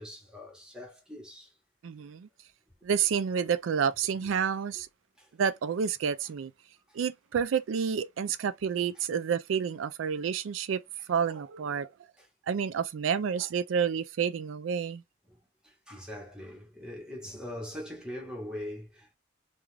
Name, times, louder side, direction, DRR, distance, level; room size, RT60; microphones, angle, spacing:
voice 1, 0.0-1.5 15.9-19.2, left 1 dB, 5° right, 1.0 m, -41 dB
voice 2, 1.8-2.3 2.8-4.9 5.4-6.5 6.9-10.8 11.1-11.9 12.5-15.0, right 7 dB, 85° right, 0.4 m, -29 dB
2.4 x 2.3 x 3.1 m
head